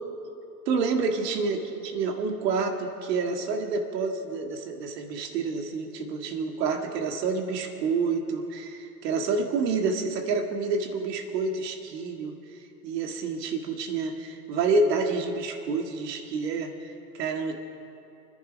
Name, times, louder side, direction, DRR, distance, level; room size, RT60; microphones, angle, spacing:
voice 1, 0.7-1.6 1.8-17.5, right 4 dB, 85° right, 4 dB, 1.9 m, -28 dB
25.5 x 10.5 x 5.2 m, 2.8 s
supercardioid pair, 115°, 47 cm